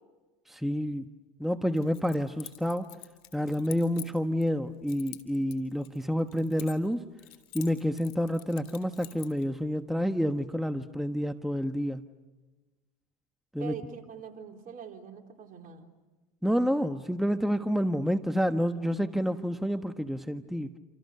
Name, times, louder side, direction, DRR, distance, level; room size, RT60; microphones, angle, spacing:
voice 1, 0.5-1.1 1.4-2.9 3.3-7.1 7.5-12.0 13.5-13.7 16.4-20.7, equal, ahead, 9 dB, 1.2 m, -29 dB
Keys jangling, 1.8-4.5 4.9-6.9 7.2-9.4, left 16 dB, 70° left, 3.6 m, -47 dB
voice 2, 13.6-15.9, right 7 dB, 45° right, 3 dB, 4.2 m, -43 dB
29.0 x 27.5 x 6.7 m, 1.2 s
hypercardioid pair, 80°, 19 cm